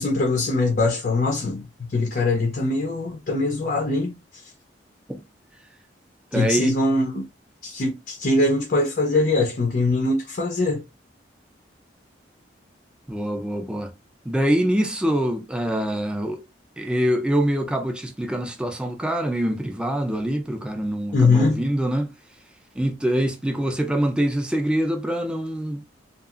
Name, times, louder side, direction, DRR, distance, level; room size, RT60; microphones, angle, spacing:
voice 1, 0.0-1.6 1.9-4.1 6.3-7.3 7.6-10.8 21.1-21.6, left 2 dB, 50° left, 0.5 m, -22 dB
voice 2, 6.3-6.7 13.1-13.9 14.2-16.4 16.8-22.1 22.8-25.8, right 1 dB, 5° right, 0.4 m, -24 dB
2.8 x 2.4 x 2.4 m
head